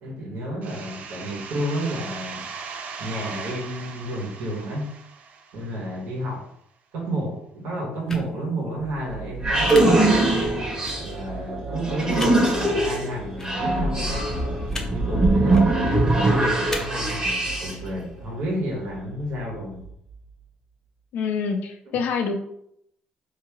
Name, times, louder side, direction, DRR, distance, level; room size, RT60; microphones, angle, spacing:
voice 1, 0.0-2.5 3.0-4.9 5.5-6.5 6.9-10.4 11.0-14.3 14.9-19.8, right 1 dB, 85° right, -1 dB, 1.3 m, -31 dB
sound 1, 0.6-6.1, right 5 dB, 55° right, 0.5 m, -39 dB
sound 2, 8.1-8.2 9.7-9.8 10.8-10.9 12.1-12.3 13.4-13.5 14.7-14.9 15.4-15.6 16.7-16.8, left 2 dB, 15° left, 0.6 m, -33 dB
sound 3, 8.8-17.9, right 2 dB, 20° right, 1.0 m, -22 dB
voice 2, 21.1-22.3, left 5 dB, 75° left, 4 dB, 0.6 m, -26 dB
3.6 x 2.8 x 2.9 m, 0.73 s
cardioid pair, 120°, 3 cm